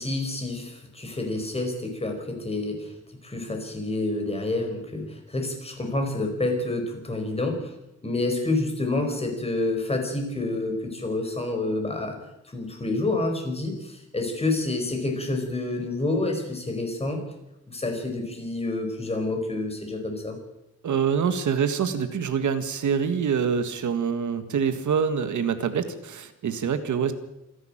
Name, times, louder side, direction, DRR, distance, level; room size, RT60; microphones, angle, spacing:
voice 1, 0.0-2.9 3.2-7.7 8.0-12.2 12.5-17.2 17.7-20.4, left 2 dB, 20° left, 3 dB, 4.9 m, -28 dB
voice 2, 20.8-27.1, right 7 dB, 75° right, 9 dB, 1.9 m, -25 dB
27.0 x 11.5 x 8.9 m, 0.90 s
wide cardioid pair, 175°, 30 cm